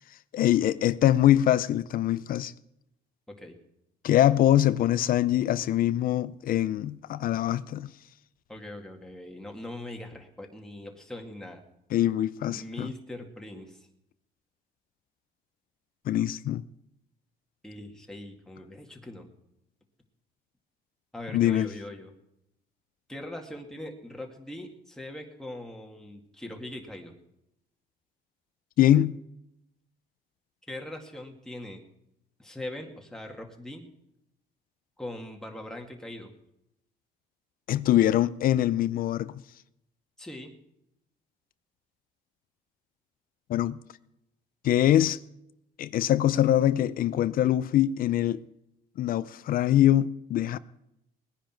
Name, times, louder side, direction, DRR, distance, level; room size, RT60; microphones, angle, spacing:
voice 1, 0.3-2.5 4.0-7.9 11.9-12.9 16.1-16.6 21.3-21.7 28.8-29.2 37.7-39.4 43.5-43.8 44.6-45.2 45.8-48.4 49.0-50.6, left 12 dB, 60° left, 0.5 m, -23 dB
voice 2, 8.5-11.6 12.6-13.8 17.6-19.3 21.1-22.1 23.1-27.1 30.7-31.8 32.4-33.9 35.0-36.3 40.2-40.5, left 1 dB, 5° left, 2.1 m, -41 dB
20.0 x 10.0 x 4.5 m
cardioid pair, 110°, 17 cm